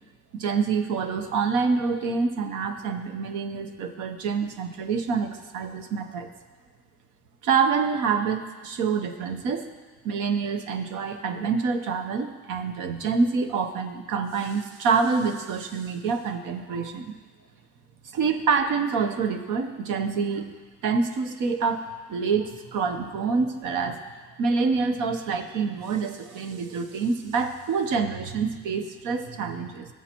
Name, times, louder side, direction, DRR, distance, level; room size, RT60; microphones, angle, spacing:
voice 1, 0.3-6.3 7.4-9.7 10.0-17.0 18.1-20.5 20.8-24.0 24.4-29.9, right 5 dB, 90° right, 7 dB, 0.9 m, -26 dB
17.0 x 7.3 x 3.0 m, 1.4 s
cardioid pair, 90°, 30 cm